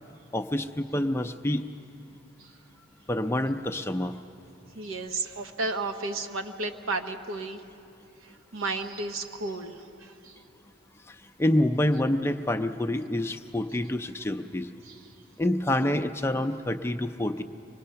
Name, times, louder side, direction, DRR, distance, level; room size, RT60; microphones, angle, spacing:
voice 1, 0.3-1.7 3.1-4.1 11.1-14.7 15.4-17.4, left 1 dB, 10° left, 8 dB, 0.4 m, -27 dB
voice 2, 4.8-7.6 8.5-10.3 14.9-15.0, right 3 dB, 85° right, 6 dB, 1.0 m, -33 dB
25.0 x 20.0 x 5.7 m, 2.6 s
head